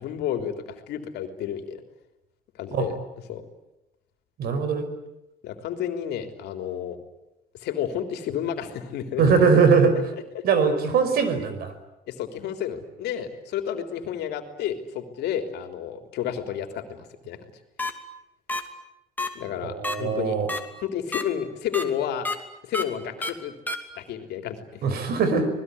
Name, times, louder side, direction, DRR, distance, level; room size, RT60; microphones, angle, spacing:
voice 1, 0.0-1.8 2.6-3.0 3.3-3.4 5.4-7.0 7.6-9.2 9.7-9.8 10.3-10.4 12.1-17.4 19.3-20.4 20.8-22.3 22.6-23.5 24.0-24.9, left 9 dB, 80° left, 7 dB, 3.5 m, -31 dB
voice 2, 4.4-4.9 9.2-10.0 10.4-11.7 19.6-20.5 24.8-25.5, right 5 dB, 65° right, 10 dB, 5.2 m, -21 dB
sound 1, 17.8-17.9 18.5-18.6 19.2-19.3 19.8-19.9 20.5-20.6 21.1-21.2 21.7-21.8 22.2-22.4 22.7-22.8 23.2-23.3 23.7-23.8, left 2 dB, 10° left, 2.8 m, -27 dB
26.0 x 20.0 x 9.8 m, 0.92 s
cardioid pair, 110°, 17 cm